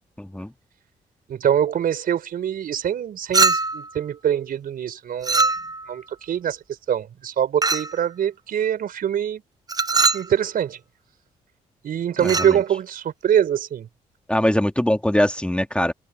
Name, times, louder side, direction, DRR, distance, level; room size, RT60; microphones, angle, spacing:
voice 1, 0.2-0.5 12.2-12.5 14.3-15.9, left 1 dB, 5° left, 2.0 m, -22 dB
voice 2, 1.3-5.5 5.9-6.6 6.9-9.4 10.1-10.8 11.8-13.9, right 9 dB, 65° right, 4.7 m, -24 dB
Chink clink, 3.3-3.9 5.2-5.9 7.6-8.0 9.7-10.3 12.2-12.6, right 3 dB, 25° right, 0.9 m, -21 dB
hypercardioid pair, 50°, 16 cm